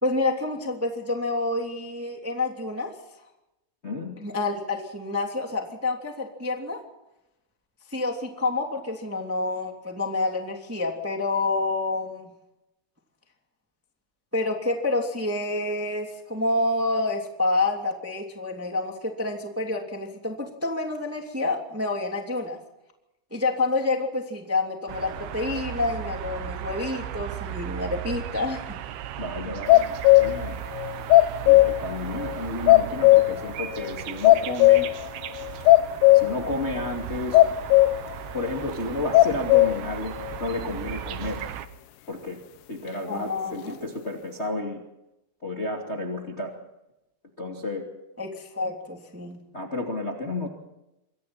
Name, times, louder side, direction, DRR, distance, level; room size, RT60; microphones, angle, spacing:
voice 1, 0.0-2.9 4.2-6.8 7.9-12.3 14.3-22.6 23.3-28.8 43.1-43.8 48.2-49.4, left 2 dB, 5° right, 2 dB, 2.1 m, -28 dB
voice 2, 3.8-4.2 29.2-30.6 31.4-34.9 36.1-37.4 38.3-41.4 42.1-42.4 42.7-44.8 45.4-46.5 47.4-47.8 49.5-50.5, left 2 dB, 20° left, 1 dB, 2.1 m, -32 dB
sound 1, 24.9-41.7, right 11 dB, 75° right, 3.1 m, -36 dB
sound 2, 29.7-30.5 30.8-31.9 32.2-32.3 32.7-33.5 33.8-33.9 34.2-35.1 35.4-36.5 36.8-36.9 37.3-38.1 38.5-38.6 39.1-39.9, left 17 dB, 80° left, 2.8 m, -16 dB
27.0 x 24.0 x 4.4 m, 0.91 s
omnidirectional pair, 4.8 m